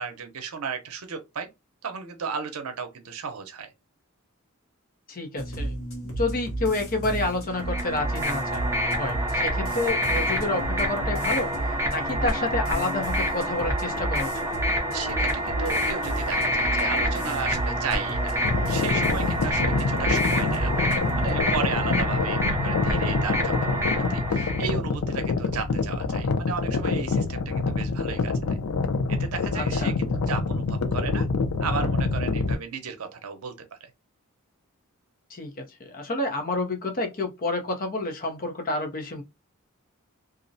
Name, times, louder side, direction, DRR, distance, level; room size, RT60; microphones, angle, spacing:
voice 1, 0.0-1.5 1.8-3.7 14.9-28.3 29.1-31.3 31.6-33.9, right 5 dB, 85° right, 0.6 m, -35 dB
voice 2, 5.1-5.7 6.2-8.6 9.0-11.5 11.9-14.3 29.6-30.0 35.3-35.6 35.9-39.2, left 2 dB, 40° left, 0.6 m, -29 dB
sound 1, 5.4-21.3, right 1 dB, 70° left, 0.8 m, -32 dB
sound 2, 7.6-24.7, equal, 10° right, 0.5 m, -28 dB
sound 3, 18.4-32.5, left 4 dB, 85° left, 0.4 m, -26 dB
2.4 x 2.0 x 2.6 m
head